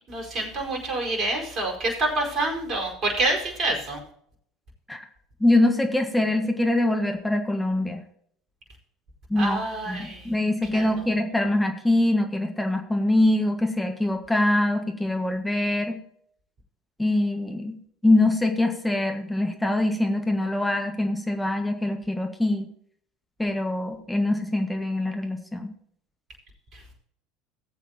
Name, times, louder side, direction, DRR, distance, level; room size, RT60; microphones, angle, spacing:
voice 1, 0.1-4.0 9.4-10.3 10.7-10.8, right 2 dB, 40° right, 0 dB, 4.9 m, -27 dB
voice 2, 5.4-8.0 9.3-16.0 17.0-17.8 18.0-22.7 23.4-25.7, left 1 dB, 5° left, 4 dB, 1.6 m, -24 dB
18.5 x 8.1 x 2.9 m, 0.64 s
figure-of-eight pair, 70°, 0 cm